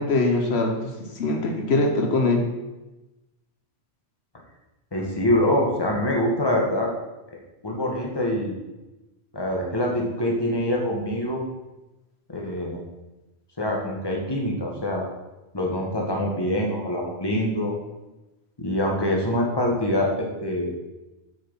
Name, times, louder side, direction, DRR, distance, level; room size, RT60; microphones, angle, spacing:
voice 1, 0.0-2.5, left 2 dB, 75° left, 3 dB, 1.3 m, -23 dB
voice 2, 4.9-6.9 7.6-8.5 9.3-11.4 12.3-12.8 13.6-15.1 15.5-17.7 18.6-20.7, left 1 dB, 20° left, -1 dB, 1.7 m, -24 dB
8.0 x 6.5 x 5.6 m, 1.0 s
omnidirectional pair, 1.1 m